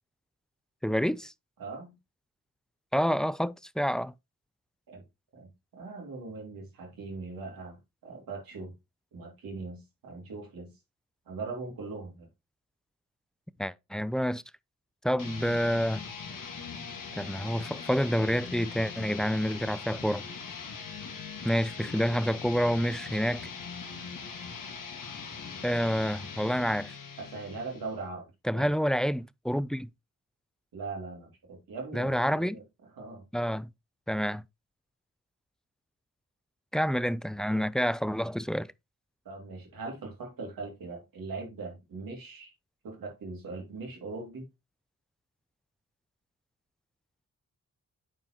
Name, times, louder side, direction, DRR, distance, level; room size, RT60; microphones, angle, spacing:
voice 1, 0.8-1.3 2.9-4.1 13.6-14.4 15.0-16.0 17.2-20.2 21.4-23.4 25.6-26.9 28.5-29.9 31.9-32.6 33.3-33.7 34.1-34.4 36.7-38.7, equal, ahead, 0.3 m, -28 dB
voice 2, 1.6-2.0 4.9-5.0 5.3-8.8 9.1-10.7 11.3-12.3 27.2-28.3 28.5-28.8 30.7-32.6 33.0-33.2 39.2-42.5 42.8-44.5, right 3 dB, 75° right, 2.5 m, -40 dB
sound 1, 15.2-28.0, left 5 dB, 65° left, 1.7 m, -41 dB
9.0 x 4.4 x 2.9 m
supercardioid pair, 50°, 35 cm